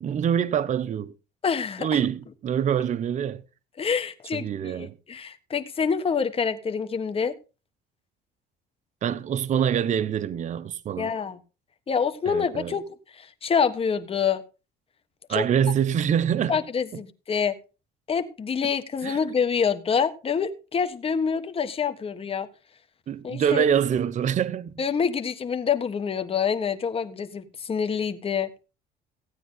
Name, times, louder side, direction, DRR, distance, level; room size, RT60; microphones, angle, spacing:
voice 1, 0.0-1.1 1.8-3.4 4.3-5.0 9.0-11.1 12.3-12.8 15.3-16.6 19.0-19.2 23.1-24.7, right 8 dB, 45° right, 0.8 m, -25 dB
voice 2, 1.4-2.0 3.8-7.3 11.0-11.4 11.9-12.8 13.2-14.4 15.3-15.4 16.5-17.6 18.1-22.5 23.2-23.6 24.8-28.5, left 6 dB, 35° left, 1.5 m, -26 dB
16.0 x 9.2 x 3.9 m
cardioid pair, 110°, 17 cm